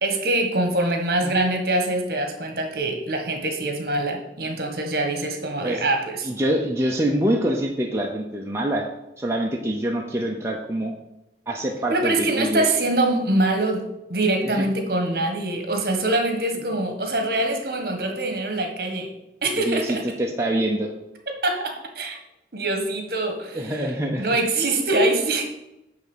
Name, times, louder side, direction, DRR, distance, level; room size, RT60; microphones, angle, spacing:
voice 1, 0.0-6.3 11.9-13.8 14.1-19.1 19.4-20.0 21.4-22.2 22.5-23.9 24.2-25.4, right 2 dB, 55° right, 4 dB, 1.6 m, -24 dB
voice 2, 6.2-8.9 9.2-10.9 11.5-12.6 14.4-14.7 19.6-20.9 23.5-24.3, right 1 dB, 15° right, 0 dB, 0.7 m, -25 dB
9.8 x 3.6 x 7.2 m, 0.90 s
head